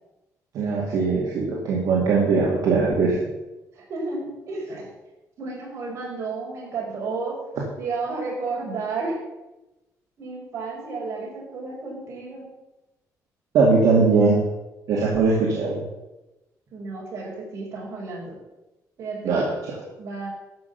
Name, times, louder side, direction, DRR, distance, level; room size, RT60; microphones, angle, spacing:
voice 1, 0.5-3.2 13.5-14.4 14.9-15.8 19.2-19.7, right 4 dB, 65° right, -4 dB, 2.5 m, -20 dB
voice 2, 3.7-4.9 5.4-7.4 7.8-9.2 10.2-12.5 16.7-18.3 19.0-19.4 20.0-20.3, right 3 dB, 45° right, -2 dB, 4.5 m, -32 dB
13.0 x 6.2 x 7.0 m, 1.0 s
cardioid pair, 155°, 6 cm